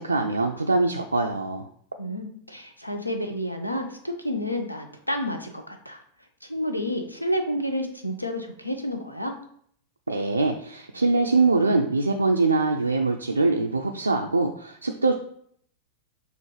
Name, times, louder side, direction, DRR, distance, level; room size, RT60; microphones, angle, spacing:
voice 1, 0.0-1.6 10.1-15.1, right 3 dB, 80° right, 3 dB, 0.3 m, -23 dB
voice 2, 2.0-6.0 6.4-9.3, equal, 90° left, 5 dB, 0.6 m, -30 dB
6.5 x 2.4 x 3.1 m, 0.64 s
figure-of-eight pair, 90°, 0 cm